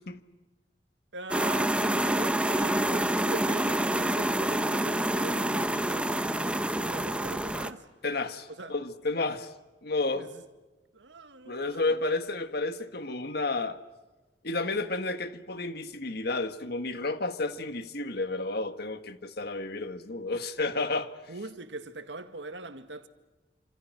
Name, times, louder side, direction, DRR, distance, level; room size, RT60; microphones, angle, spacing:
voice 1, 1.1-7.9 8.6-8.8 10.1-10.4 10.9-12.0 21.3-23.1, right 2 dB, 80° right, 1.9 m, -41 dB
sound 1, 1.3-7.7, right 1 dB, 5° right, 1.0 m, -27 dB
voice 2, 8.0-9.5 9.8-10.3 11.5-13.8 14.4-21.1, left 3 dB, 60° left, 1.7 m, -31 dB
28.0 x 27.0 x 6.2 m
head